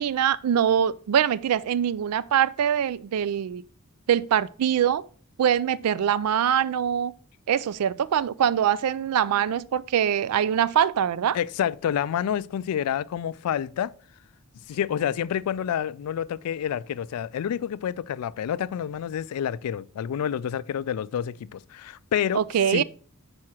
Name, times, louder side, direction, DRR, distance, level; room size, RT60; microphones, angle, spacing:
voice 1, 0.0-3.6 4.1-5.0 5.4-7.1 7.5-11.4 22.3-22.8, right 9 dB, 90° right, 0.4 m, -23 dB
voice 2, 11.3-13.9 14.7-22.4 22.7-22.8, left 9 dB, 80° left, 0.3 m, -28 dB
6.2 x 4.8 x 4.3 m
head